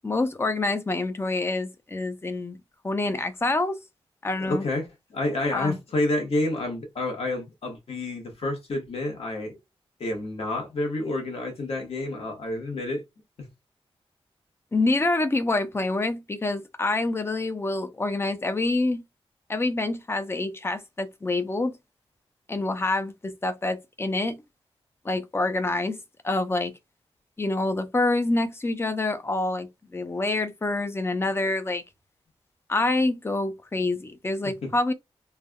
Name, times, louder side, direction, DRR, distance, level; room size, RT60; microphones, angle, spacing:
voice 1, 0.0-2.6 2.8-3.8 4.2-4.6 5.5-5.8 14.7-19.0 19.5-21.8 22.5-24.4 25.0-26.0 26.2-26.7 27.4-29.7 29.9-31.8 32.7-34.9, left 2 dB, 25° left, 0.6 m, -26 dB
voice 2, 4.4-9.6 10.0-13.0 13.4-13.5 34.4-34.7, left 2 dB, 70° left, 1.2 m, -29 dB
3.3 x 2.3 x 2.2 m
wide cardioid pair, 105°, 10 cm